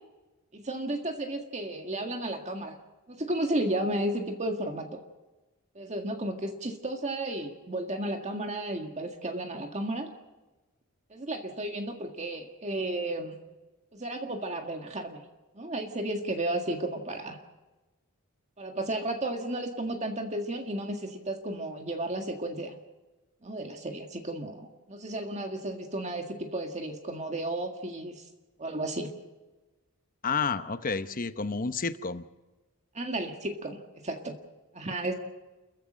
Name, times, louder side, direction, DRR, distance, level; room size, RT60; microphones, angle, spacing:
voice 1, 0.5-2.8 3.1-5.0 5.8-10.1 11.1-13.4 13.9-15.2 15.6-17.4 18.6-22.7 23.4-28.3 28.6-29.1 32.9-34.3 34.7-35.1, right 1 dB, 30° right, 4 dB, 1.8 m, -33 dB
voice 2, 30.2-32.2, left 4 dB, 40° left, 11 dB, 0.9 m, -30 dB
30.0 x 14.5 x 6.3 m, 1.1 s
head